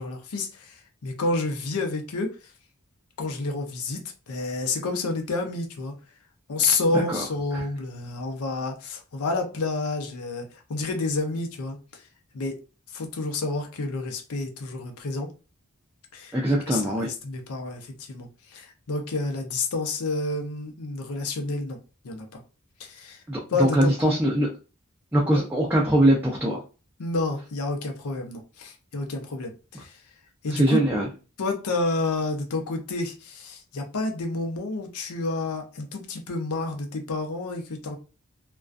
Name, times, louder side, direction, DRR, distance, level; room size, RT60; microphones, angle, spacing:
voice 1, 0.0-2.3 3.2-5.9 6.5-12.0 12.3-12.5 12.9-15.3 16.1-16.4 16.7-21.8 22.0-22.4 22.8-23.2 23.5-24.1 25.3-25.5 27.0-30.0 30.4-30.8 31.4-38.0, left 3 dB, 85° left, 0.6 m, -29 dB
voice 2, 6.9-7.2 7.5-7.6 16.3-17.1 23.3-24.5 25.1-26.6 30.5-31.1, right 1 dB, 10° right, 0.4 m, -22 dB
2.4 x 2.2 x 2.4 m
head